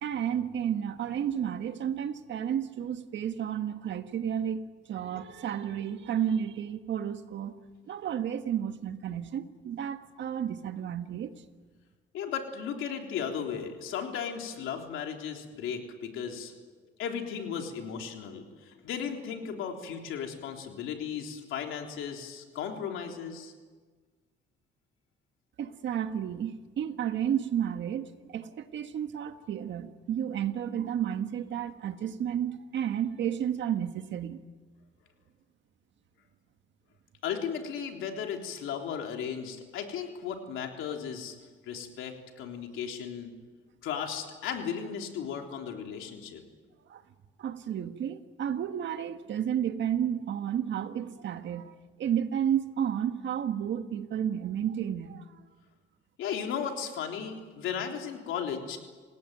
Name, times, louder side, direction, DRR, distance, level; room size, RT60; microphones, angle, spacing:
voice 1, 0.0-4.6 4.9-7.6 7.9-11.3 25.6-34.4 46.9-47.0 47.4-51.7 52.0-55.3, right 9 dB, 65° right, 8 dB, 1.7 m, -32 dB
voice 2, 12.1-16.5 17.0-23.5 37.2-41.4 41.7-43.3 43.8-46.4 56.2-58.8, left 7 dB, 90° left, 3 dB, 3.5 m, -35 dB
28.0 x 18.0 x 9.3 m, 1.4 s
cardioid pair, 90°, 20 cm